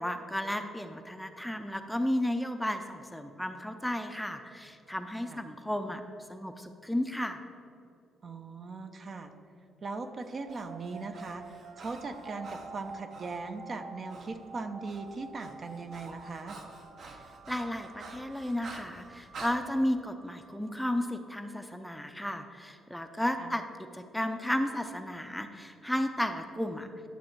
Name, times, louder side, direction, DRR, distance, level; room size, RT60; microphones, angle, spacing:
voice 1, 0.0-6.0 6.3-7.4 17.0-17.2 17.5-26.9, left 1 dB, 5° left, 7 dB, 0.6 m, -33 dB
voice 2, 8.2-9.3 9.8-11.4 11.8-16.6 23.4-23.6, right 3 dB, 40° right, 7 dB, 0.7 m, -39 dB
Breathing, 10.2-13.4 14.1-14.3 14.6-19.6, right 3 dB, 60° right, 1.2 m, -49 dB
sound 1, 10.3-21.3, right 4 dB, 90° right, 1.2 m, -49 dB
11.0 x 6.4 x 4.6 m, 2.6 s
cardioid pair, 90°, 0 cm